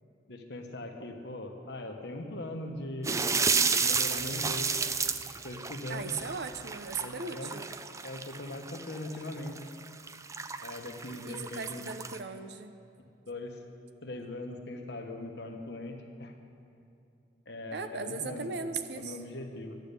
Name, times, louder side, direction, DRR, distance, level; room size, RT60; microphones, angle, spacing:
voice 1, 0.3-4.7 5.4-6.1 7.0-7.5 8.0-9.6 10.6-11.9 13.3-13.6 14.0-16.3 17.5-18.5 18.9-19.8, left 1 dB, 65° left, 4 dB, 1.2 m, -40 dB
sound 1, 3.0-12.2, right 5 dB, 15° right, 0.3 m, -32 dB
sound 2, 4.0-7.6, equal, ahead, 1.1 m, -59 dB
voice 2, 5.9-7.7 11.2-12.7 17.7-19.2, right 4 dB, 60° right, 9 dB, 0.7 m, -37 dB
12.0 x 9.4 x 6.9 m, 2.6 s
head